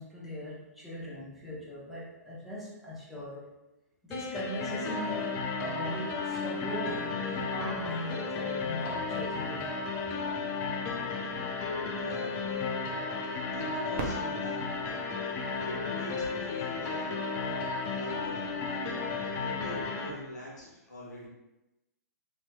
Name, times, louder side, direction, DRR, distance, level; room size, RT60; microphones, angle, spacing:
voice 1, 0.0-3.5 4.0-10.1 19.1-19.3, equal, ahead, -8 dB, 0.8 m, -40 dB
sound 1, 4.1-20.1, left 4 dB, 25° left, 0.4 m, -34 dB
voice 2, 11.9-12.6 13.5-14.6 15.3-18.5 19.4-21.3, equal, 80° left, -4 dB, 1.1 m, -43 dB
Fireworks, 13.9-16.7 17.4-17.5 18.2-18.6 20.5-20.6, right 3 dB, 45° right, 0.6 m, -42 dB
3.1 x 2.7 x 2.3 m, 0.97 s
figure-of-eight pair, 120°, 9 cm